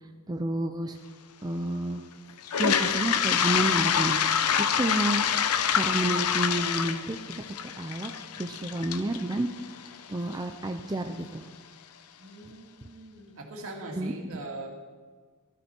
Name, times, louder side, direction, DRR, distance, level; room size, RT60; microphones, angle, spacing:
voice 1, 0.3-1.0 1.4-2.0 2.6-4.2 4.8-5.2 5.7-7.2 7.8-8.1 8.4-9.5 10.1-11.5 14.0-14.1, right 1 dB, 20° right, 5 dB, 0.5 m, -30 dB
Toilet flush, 2.4-10.4, left 8 dB, 90° left, 0.8 m, -26 dB
voice 2, 12.2-14.7, right 2 dB, 65° right, 1 dB, 2.5 m, -41 dB
16.5 x 13.5 x 4.5 m, 1.5 s
head